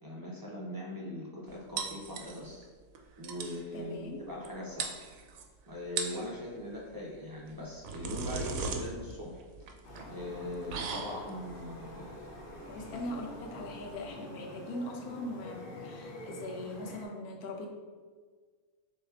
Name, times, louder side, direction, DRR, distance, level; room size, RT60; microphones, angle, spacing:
voice 1, 0.0-2.7 3.2-4.9 5.7-9.4 10.1-12.3, left 1 dB, 25° right, -4 dB, 0.4 m, -41 dB
sound 1, 1.8-2.6 2.9-3.0 3.2-3.6 4.4-4.5 4.8-5.4 5.8-6.3 7.5-14.1, right 5 dB, 70° right, 0.9 m, -39 dB
voice 2, 3.7-4.2 12.7-17.7, left 1 dB, 90° left, 2 dB, 1.2 m, -41 dB
sound 2, 9.8-17.0, left 1 dB, 50° left, 0.7 m, -46 dB
6.4 x 3.1 x 2.4 m, 1.5 s
omnidirectional pair, 1.5 m